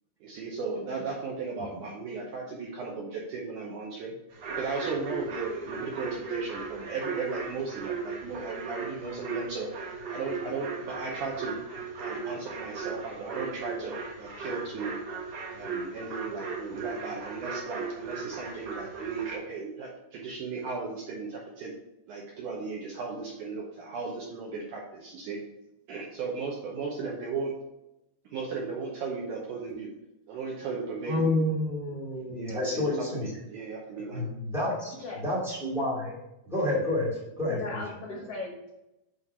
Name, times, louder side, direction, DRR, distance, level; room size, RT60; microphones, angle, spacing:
voice 1, 0.2-4.1 4.5-9.7 10.1-11.6 12.0-15.0 15.5-21.7 22.1-25.4 25.9-27.5 28.3-29.9 30.3-31.5 32.3-34.3, right 4 dB, 75° right, -2 dB, 1.9 m, -36 dB
sound 1, 4.3-19.4, right 4 dB, 55° right, 2.0 m, -37 dB
voice 2, 31.0-33.3 34.0-36.1 36.5-37.1 37.4-38.0, left 1 dB, ahead, -6 dB, 1.1 m, -29 dB
voice 3, 37.5-38.7, left 3 dB, 85° left, -2 dB, 1.3 m, -37 dB
8.1 x 3.2 x 5.6 m, 0.91 s
omnidirectional pair, 4.6 m